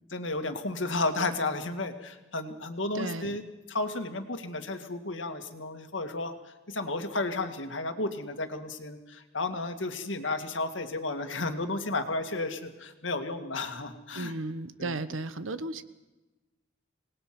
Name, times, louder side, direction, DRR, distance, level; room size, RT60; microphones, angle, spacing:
voice 1, 0.1-3.4 3.7-6.3 6.7-14.3 14.8-14.9, left 2 dB, 70° left, 7 dB, 2.2 m, -33 dB
voice 2, 2.9-3.4 14.1-15.8, right 2 dB, 85° right, 13 dB, 1.3 m, -34 dB
27.0 x 20.0 x 6.1 m, 1.1 s
head